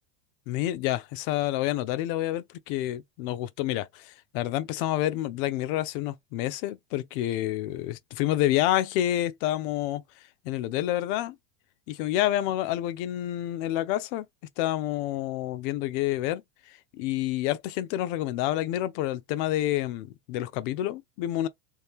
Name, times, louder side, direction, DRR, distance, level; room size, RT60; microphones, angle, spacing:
voice 1, 0.5-10.0 10.4-11.4 11.9-14.3 14.6-16.4 16.9-21.5, left 14 dB, 45° left, 0.5 m, -28 dB
3.2 x 3.0 x 3.5 m
supercardioid pair, 150°, 38 cm